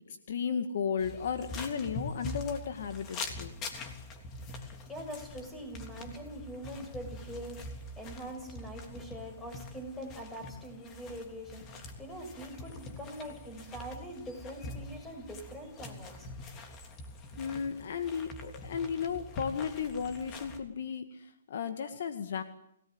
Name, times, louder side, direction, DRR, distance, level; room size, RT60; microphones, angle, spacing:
voice 1, 0.1-3.6 17.4-22.4, left 6 dB, 60° left, 8 dB, 2.0 m, -34 dB
sound 1, 1.0-20.6, left 2 dB, 25° left, 3.3 m, -44 dB
voice 2, 4.6-16.6, equal, 10° left, 6 dB, 6.7 m, -44 dB
28.0 x 18.5 x 8.1 m, 0.79 s
hypercardioid pair, 140°, 0 cm